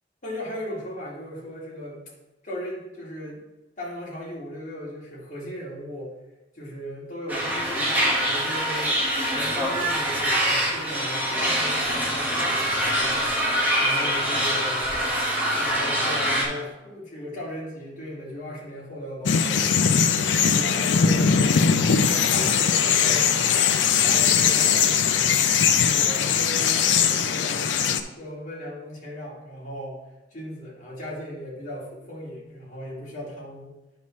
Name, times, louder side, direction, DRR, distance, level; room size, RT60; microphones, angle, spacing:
voice 1, 0.2-2.0 2.4-3.4 3.8-6.1 6.5-9.0 9.3-13.2 13.8-14.9 15.5-20.0 20.5-21.6 21.9-23.7 24.0-25.4 25.8-27.8 28.1-30.0 30.3-33.7, equal, 45° left, -6 dB, 2.3 m, -37 dB
sound 1, 7.3-16.4, equal, 10° right, 1.4 m, -24 dB
sound 2, 19.3-28.0, left 7 dB, 80° left, 0.5 m, -20 dB
8.7 x 5.8 x 3.1 m, 1.0 s
head